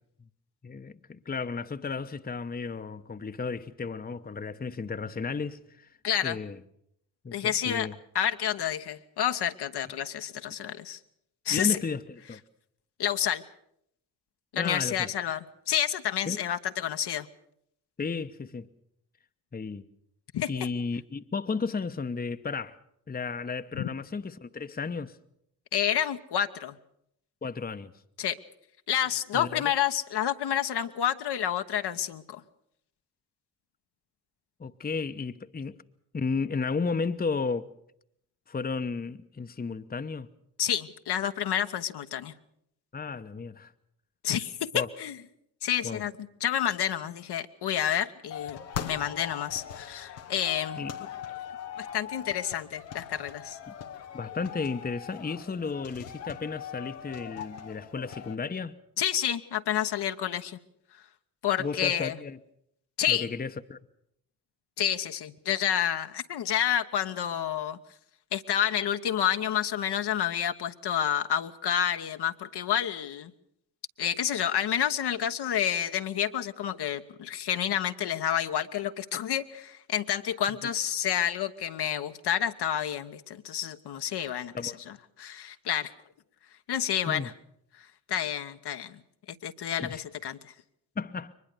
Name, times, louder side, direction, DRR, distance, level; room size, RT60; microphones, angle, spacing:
voice 1, 0.6-5.9 6.2-6.6 7.2-7.9 11.5-12.4 14.5-15.1 16.3-16.4 18.0-18.7 19.5-19.9 20.5-22.8 23.1-25.2 27.4-27.9 29.3-29.7 34.6-35.8 36.1-37.7 38.5-40.3 42.9-43.7 44.7-44.9 45.8-46.0 50.8-50.9 53.7-53.8 54.1-58.8 61.6-62.4 63.1-63.8 84.5-84.8 87.1-87.3 89.8-90.0 91.0-91.3, left 4 dB, 20° left, 0.9 m, -33 dB
voice 2, 6.0-6.4 7.3-7.9 8.1-11.0 11.4-11.8 13.0-13.4 14.5-17.3 20.3-20.5 23.8-23.9 25.7-26.8 28.2-28.4 28.9-32.4 40.6-42.3 44.2-45.2 45.6-50.8 51.8-53.6 59.0-60.6 61.4-62.2 63.0-63.3 64.8-67.8 68.3-73.3 74.0-84.7 85.2-85.9 86.7-87.3 88.1-89.0 89.3-90.5, left 10 dB, 55° left, 1.1 m, -29 dB
sound 1, 48.3-58.3, left 9 dB, 90° left, 1.1 m, -41 dB
23.0 x 20.5 x 6.8 m
hypercardioid pair, 40°, 48 cm